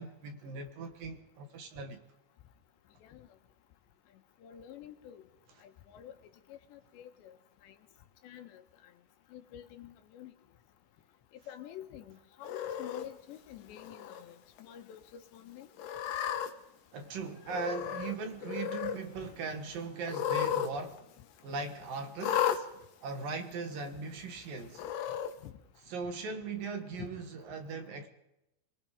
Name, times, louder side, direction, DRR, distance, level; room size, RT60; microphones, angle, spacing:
voice 1, 0.0-2.0 16.9-21.0 21.4-22.7 23.0-24.8 25.9-28.1, right 4 dB, 60° right, 3.0 m, -39 dB
voice 2, 4.4-5.2 5.6-6.1 6.5-7.3 7.6-7.8 8.2-8.6 9.3-10.3 11.5-15.7 17.5-17.6 25.4-25.5 27.0-27.2, left 10 dB, 80° left, 3.6 m, -48 dB
Cat, 12.4-13.0 13.8-14.2 14.6-14.7 15.8-16.5 17.5-18.1 18.4-19.0 20.0-20.7 21.0-21.1 22.2-22.6 23.5-23.6 24.7-25.3, left 9 dB, 65° left, 2.4 m, -33 dB
24.0 x 22.0 x 5.1 m
omnidirectional pair, 5.0 m